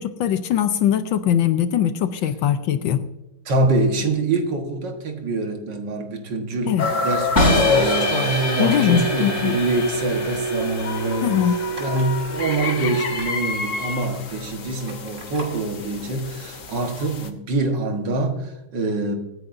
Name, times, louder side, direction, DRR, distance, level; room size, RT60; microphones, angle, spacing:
voice 1, 0.0-3.0 6.7-6.9 8.6-9.5 11.2-11.5, left 9 dB, 75° left, 10 dB, 1.4 m, -21 dB
voice 2, 3.5-11.3 11.8-19.1, right 2 dB, 60° right, 3 dB, 2.1 m, -25 dB
sound 1, 6.8-17.3, left 5 dB, 50° left, 1.1 m, -29 dB
sound 2, 7.4-13.3, equal, 30° left, 3.5 m, -25 dB
sound 3, 7.5-9.6 10.2-10.3 11.5-11.6 11.8-12.1 13.1-13.3 14.9-15.5, right 2 dB, 35° right, 3.1 m, -28 dB
23.5 x 9.7 x 2.6 m, 0.97 s
omnidirectional pair, 2.3 m